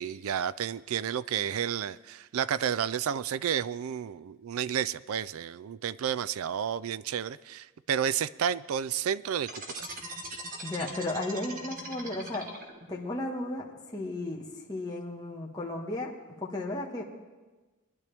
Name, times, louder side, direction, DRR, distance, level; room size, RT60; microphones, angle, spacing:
voice 1, 0.0-9.6, right 8 dB, 70° right, 18 dB, 0.4 m, -31 dB
sound 1, 9.5-13.0, right 2 dB, 40° right, 1.5 m, -40 dB
voice 2, 10.6-12.5 12.9-13.7 13.9-16.1 16.4-17.0, left 2 dB, 15° left, -3 dB, 1.5 m, -34 dB
22.0 x 10.5 x 3.4 m, 1.2 s
head